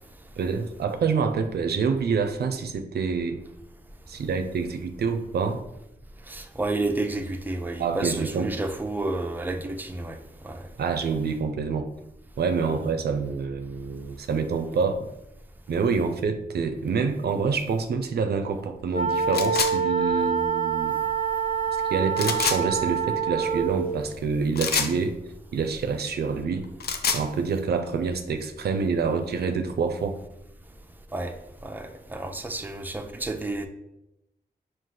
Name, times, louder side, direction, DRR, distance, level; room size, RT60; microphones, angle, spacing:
voice 1, 0.4-3.4 4.1-5.6 7.8-8.6 10.8-11.9 12.4-15.1 15.7-21.0 21.8-25.2 25.5-26.7 27.1-30.2, right 5 dB, 90° right, 0.4 m, -27 dB
voice 2, 6.3-10.2 10.4-10.6 31.1-31.3 31.6-33.7, right 2 dB, 10° right, 0.5 m, -30 dB
sound 1, 18.9-23.8, right 6 dB, 45° left, 1.5 m, -26 dB
sound 2, 19.3-19.7 22.1-22.6 24.6-24.9 26.6-27.2, left 6 dB, 85° left, 0.4 m, -26 dB
4.7 x 2.4 x 3.8 m
cardioid pair, 60°, 16 cm